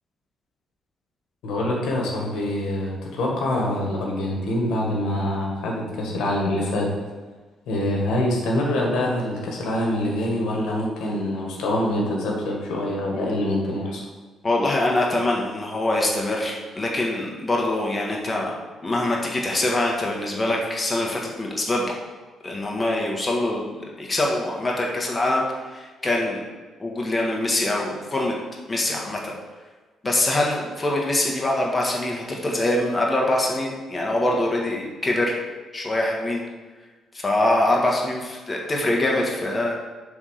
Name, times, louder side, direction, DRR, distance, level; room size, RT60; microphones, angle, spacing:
voice 1, 1.4-6.9 7.7-14.0, left 1 dB, 85° left, -1 dB, 1.7 m, -25 dB
voice 2, 14.4-18.5 18.8-21.8 22.4-26.4 26.8-28.3 28.7-29.3 30.0-35.4 35.7-36.4 37.1-39.8, left 1 dB, 25° left, -2 dB, 1.6 m, -24 dB
7.2 x 3.7 x 6.4 m, 1.3 s
cardioid pair, 90°, 0 cm